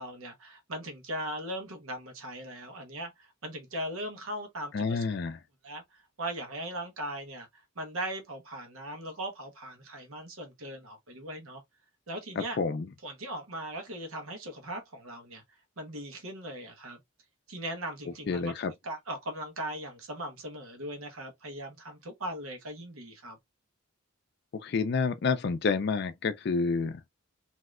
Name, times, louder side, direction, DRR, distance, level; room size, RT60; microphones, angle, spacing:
voice 1, 0.0-5.0 5.6-11.6 12.1-12.6 13.0-15.4 15.8-17.0 17.5-18.5 18.8-23.4, right 1 dB, 90° right, 1.1 m, -39 dB
voice 2, 4.7-5.4 12.4-12.9 18.3-18.7 24.6-27.1, left 4 dB, 50° left, 0.4 m, -29 dB
3.2 x 2.8 x 2.4 m
head